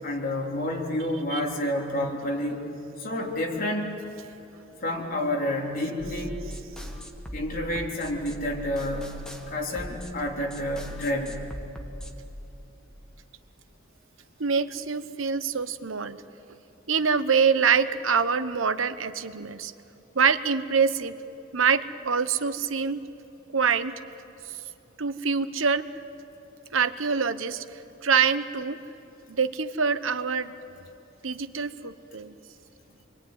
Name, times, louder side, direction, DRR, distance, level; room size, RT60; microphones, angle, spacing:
voice 1, 0.0-2.7 3.0-3.9 4.8-6.5 7.3-9.2 9.5-11.4, left 1 dB, 45° left, -1 dB, 3.7 m, -29 dB
sound 1, 6.0-12.2, equal, 5° left, 2.0 m, -40 dB
voice 2, 14.4-16.2 16.9-19.7 20.1-21.2 21.5-23.0 23.5-23.9 25.0-25.9 26.7-27.6 28.0-28.8 29.3-30.5 31.2-32.3, right 6 dB, 90° right, 12 dB, 1.0 m, -25 dB
27.5 x 22.5 x 9.6 m, 2.9 s
head